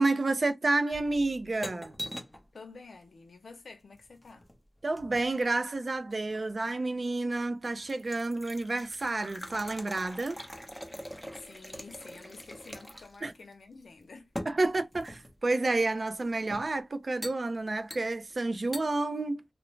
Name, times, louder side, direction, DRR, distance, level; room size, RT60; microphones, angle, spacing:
voice 1, 0.0-2.0 4.8-10.4 13.2-13.3 14.5-19.5, right 2 dB, 50° right, 0.4 m, -30 dB
sound 1, 0.9-2.5 3.9-5.3 6.1-6.8 7.3-7.4 7.7-13.3 13.5-13.6 14.4-15.4 16.2-16.7 17.2-17.4 17.9-18.3 18.7-18.9, equal, 5° left, 0.7 m, -43 dB
voice 2, 2.5-4.5 11.3-14.3, left 4 dB, 90° left, 0.6 m, -49 dB
2.4 x 2.0 x 3.1 m
wide cardioid pair, 65°, 0 cm